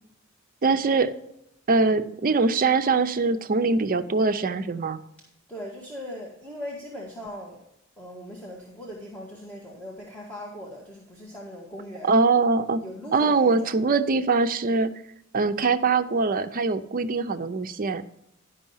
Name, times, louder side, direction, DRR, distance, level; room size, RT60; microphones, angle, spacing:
voice 1, 0.6-1.1 1.7-5.0 12.0-12.8 13.1-14.9 15.3-18.0, right 4 dB, 45° right, 10 dB, 0.5 m, -22 dB
voice 2, 5.5-7.6 8.0-12.2 12.8-13.7, equal, 5° left, -4 dB, 1.5 m, -39 dB
11.0 x 5.5 x 5.5 m, 0.80 s
head